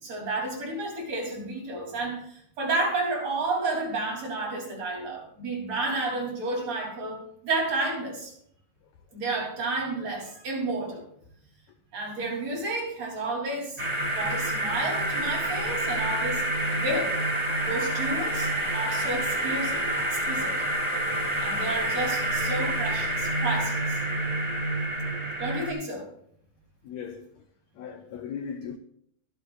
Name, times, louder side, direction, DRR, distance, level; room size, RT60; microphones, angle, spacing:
voice 1, 0.0-8.3 9.1-11.1 11.9-13.8 14.2-16.4 16.7-17.2 17.6-20.6 21.4-24.0 25.4-26.1, right 2 dB, 50° right, 4.1 m, -31 dB
sound 1, 13.8-25.7, right 1 dB, 75° right, 0.3 m, -28 dB
voice 2, 26.8-27.3 27.7-28.8, left 7 dB, 80° left, 1.6 m, -38 dB
23.0 x 8.0 x 2.4 m
omnidirectional pair, 4.1 m